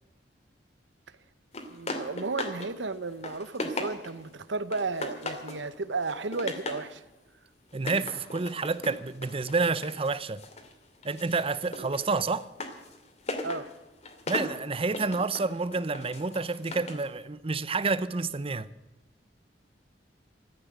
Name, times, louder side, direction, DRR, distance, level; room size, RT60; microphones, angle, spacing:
sound 1, 1.5-2.7 3.0-4.3 4.7-5.6 6.0-6.9 7.7-10.7 11.0-17.1, left 2 dB, 40° left, 2.4 m, -38 dB
voice 1, 1.7-7.0 11.8-11.9 13.4-13.7, right 3 dB, 85° right, 0.9 m, -33 dB
voice 2, 7.7-10.4 11.0-12.5 14.3-18.7, right 4 dB, 30° right, 0.6 m, -29 dB
14.0 x 9.2 x 9.9 m
head